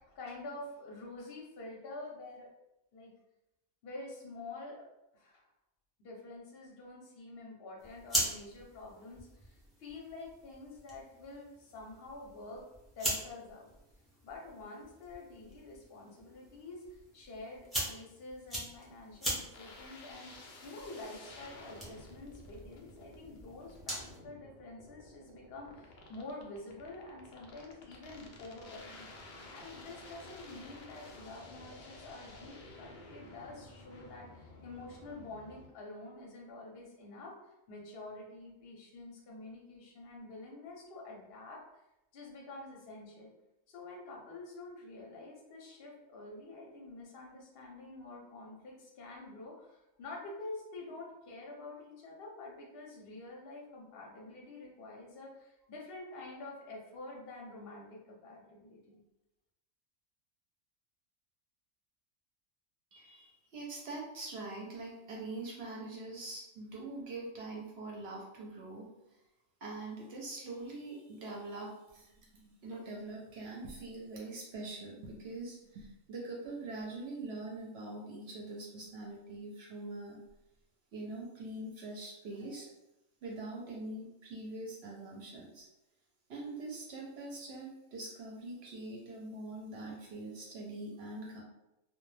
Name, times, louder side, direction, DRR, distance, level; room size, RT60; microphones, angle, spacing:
voice 1, 0.0-2.5 2.9-3.1 3.8-4.9 5.1-5.5 6.0-12.6 13.0-13.7 14.2-29.1 29.5-41.6 42.1-43.3 43.7-59.0, left 2 dB, 55° left, -2 dB, 0.7 m, -48 dB
sound 1, 7.8-24.2, right 1 dB, ahead, 0.3 m, -42 dB
sound 2, 19.5-35.7, left 2 dB, 80° left, 0.4 m, -52 dB
voice 2, 62.9-68.9 69.6-80.2 80.9-82.7 83.2-85.7 86.3-91.4, right 2 dB, 60° right, -2 dB, 0.7 m, -43 dB
2.2 x 2.1 x 3.1 m, 0.91 s
omnidirectional pair, 1.4 m